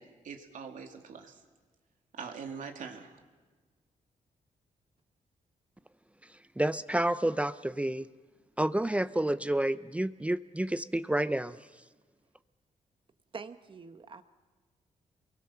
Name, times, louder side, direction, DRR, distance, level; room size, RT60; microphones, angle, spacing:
voice 1, 0.0-1.3 2.1-3.1, right 6 dB, 75° right, 4 dB, 2.7 m, -43 dB
voice 2, 6.6-8.1 8.6-11.6, right 1 dB, 10° right, 14 dB, 0.6 m, -29 dB
voice 3, 13.3-14.2, right 5 dB, 40° right, 10 dB, 1.3 m, -44 dB
29.0 x 23.0 x 5.8 m, 1.4 s
cardioid pair, 105°, 14 cm